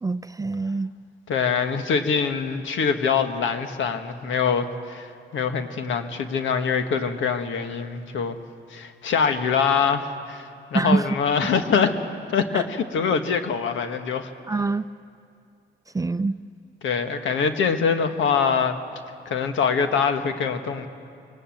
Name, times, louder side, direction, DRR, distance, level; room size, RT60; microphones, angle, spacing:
voice 1, 0.0-0.9 10.7-11.1 12.5-12.6 14.5-14.8 15.9-16.3, right 3 dB, 15° right, 13 dB, 0.6 m, -24 dB
voice 2, 1.3-8.4 8.7-11.9 12.3-14.3 16.8-18.8 19.2-20.9, left 6 dB, 75° left, 7 dB, 1.6 m, -24 dB
23.5 x 19.0 x 7.9 m, 2.5 s
cardioid pair, 70°, 20 cm